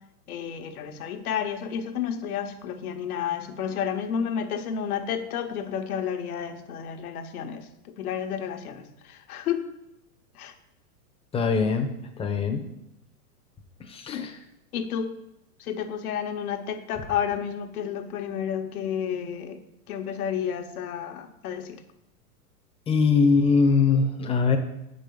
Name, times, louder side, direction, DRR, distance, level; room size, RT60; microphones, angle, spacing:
voice 1, 0.3-7.7 8.0-9.7 10.3-10.5 14.1-14.3 14.7-15.1 15.6-19.6 19.9-21.8, left 8 dB, 65° left, 6 dB, 1.2 m, -31 dB
voice 2, 11.3-11.9 12.2-12.6 13.8-14.3 22.9-24.6, left 4 dB, 10° left, 3 dB, 0.9 m, -22 dB
7.3 x 5.4 x 7.0 m, 0.86 s
hypercardioid pair, 130°, 46 cm